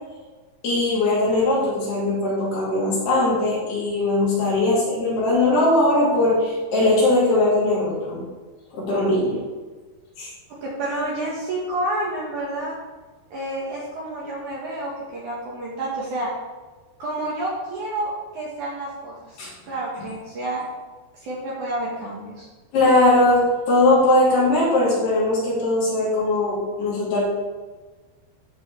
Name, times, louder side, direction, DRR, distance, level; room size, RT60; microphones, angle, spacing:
voice 1, 0.6-8.2 8.7-9.4 10.2-10.3 19.4-19.5 22.7-27.2, left 2 dB, 65° left, -8 dB, 5.2 m, -20 dB
voice 2, 10.6-12.8 13.3-16.3 17.0-19.4 19.7-20.6 21.1-22.5, right 1 dB, 60° right, -5 dB, 2.4 m, -29 dB
13.5 x 4.6 x 4.3 m, 1.3 s
omnidirectional pair, 4.9 m